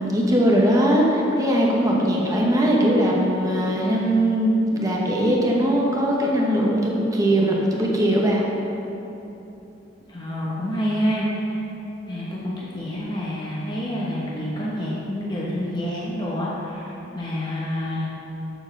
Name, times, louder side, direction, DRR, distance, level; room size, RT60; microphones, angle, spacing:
voice 1, 0.0-8.5, right 1 dB, 20° right, -3 dB, 1.0 m, -20 dB
voice 2, 10.1-11.6 12.1-18.1, equal, 25° left, -6 dB, 1.1 m, -28 dB
7.1 x 6.5 x 5.9 m, 2.9 s
head